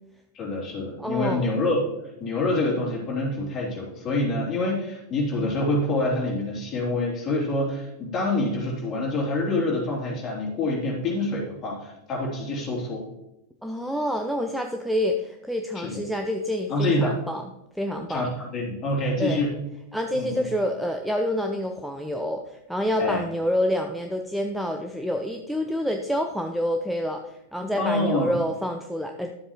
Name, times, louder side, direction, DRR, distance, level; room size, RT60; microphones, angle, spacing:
voice 1, 0.3-1.8 2.2-13.1 15.7-16.0 16.7-17.2 18.1-19.5 20.1-20.5 23.0-23.2 27.7-28.4, left 2 dB, 30° left, -3 dB, 3.3 m, -26 dB
voice 2, 1.0-1.5 13.6-17.4 17.7-18.2 19.2-19.4 19.9-29.3, equal, ahead, 4 dB, 0.6 m, -27 dB
11.5 x 7.7 x 3.1 m, 0.87 s
figure-of-eight pair, 90°, 0 cm